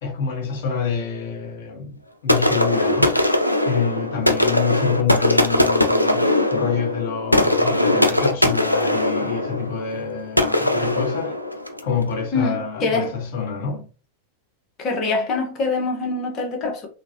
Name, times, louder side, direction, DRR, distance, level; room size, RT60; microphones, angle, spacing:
voice 1, 0.0-3.2 3.6-11.4 11.8-13.8, left 6 dB, 50° left, 1.7 m, -27 dB
sound 1, 2.3-11.9, left 1 dB, 90° left, 0.5 m, -20 dB
voice 2, 12.3-13.2 14.8-16.9, left 3 dB, 30° left, 1.3 m, -24 dB
3.8 x 3.3 x 2.9 m
figure-of-eight pair, 90°, 0 cm